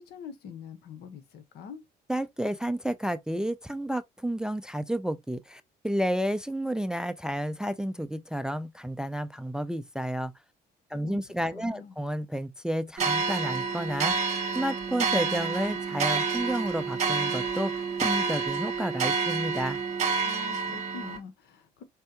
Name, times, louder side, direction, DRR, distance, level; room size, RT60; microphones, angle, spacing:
voice 1, 0.0-1.8 11.0-11.2 11.5-11.9 20.2-21.8, left 6 dB, 75° left, 1.2 m, -44 dB
voice 2, 2.1-10.3 10.9-19.8, equal, 5° right, 0.4 m, -31 dB
sound 1, 13.0-21.2, right 5 dB, 45° right, 1.7 m, -29 dB
5.4 x 3.4 x 2.9 m
cardioid pair, 110°, 17 cm